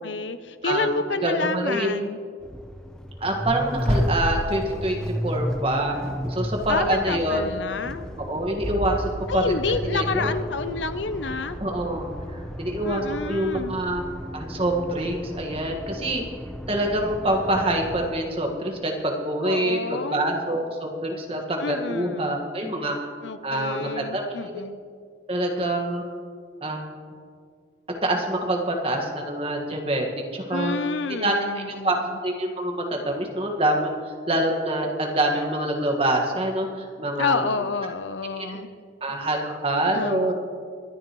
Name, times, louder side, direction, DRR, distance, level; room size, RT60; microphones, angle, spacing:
voice 1, 0.0-2.2 6.7-8.1 9.3-11.6 12.8-13.8 19.4-20.3 21.6-22.3 23.2-24.8 30.5-32.1 37.2-38.7 39.9-40.3, left 4 dB, 85° left, 11 dB, 0.6 m, -29 dB
voice 2, 1.2-2.1 3.2-6.0 6.3-7.4 8.3-9.6 9.8-10.3 11.6-14.0 14.3-16.2 16.7-23.0 23.4-24.6 25.3-26.0 26.6-26.8 28.0-30.1 30.3-30.8 31.1-33.9 34.3-37.4 38.3-38.6 39.0-40.3, right 1 dB, 30° right, 2 dB, 1.6 m, -26 dB
Accelerating revving vroom, 2.4-18.1, equal, 5° left, 0.7 m, -32 dB
24.0 x 10.0 x 3.1 m, 2.1 s
head